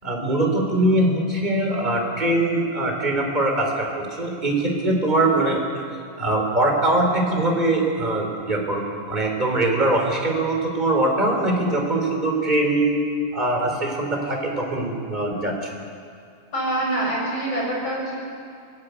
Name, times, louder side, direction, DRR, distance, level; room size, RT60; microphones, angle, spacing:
voice 1, 0.0-5.6 6.2-13.0 13.3-15.7, right 2 dB, 15° right, 1 dB, 3.9 m, -22 dB
voice 2, 16.5-18.2, right 1 dB, 35° left, -3 dB, 7.8 m, -25 dB
27.0 x 17.5 x 8.3 m, 2.3 s
omnidirectional pair, 3.8 m